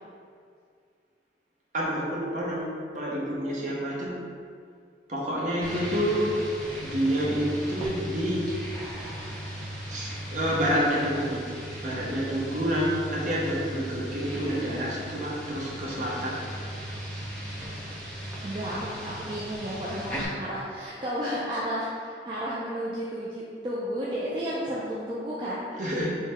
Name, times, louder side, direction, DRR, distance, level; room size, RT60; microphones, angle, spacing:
voice 1, 1.7-4.1 5.1-6.3 6.8-8.4 9.9-11.4 11.8-16.4 25.8-26.2, equal, 45° right, -5 dB, 0.8 m, -28 dB
sound 1, 5.6-20.2, equal, 5° left, 0.7 m, -37 dB
voice 2, 18.4-25.6, equal, 25° right, -7 dB, 0.4 m, -32 dB
3.6 x 2.7 x 4.3 m, 2.2 s
head